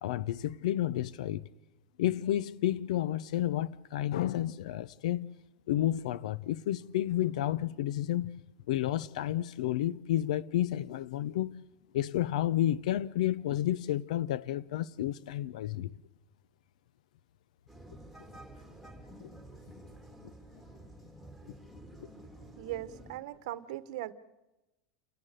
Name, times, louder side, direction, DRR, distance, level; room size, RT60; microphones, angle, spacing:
voice 1, 0.0-1.5 2.0-5.3 5.7-8.3 8.7-11.6 11.9-15.9 19.2-19.3, left 12 dB, 85° left, 0.7 m, -31 dB
sound 1, 17.7-23.2, right 1 dB, 5° left, 1.9 m, -51 dB
voice 2, 22.6-24.1, right 15 dB, 65° right, 1.0 m, -39 dB
28.5 x 19.0 x 6.7 m
supercardioid pair, 175°, 4 cm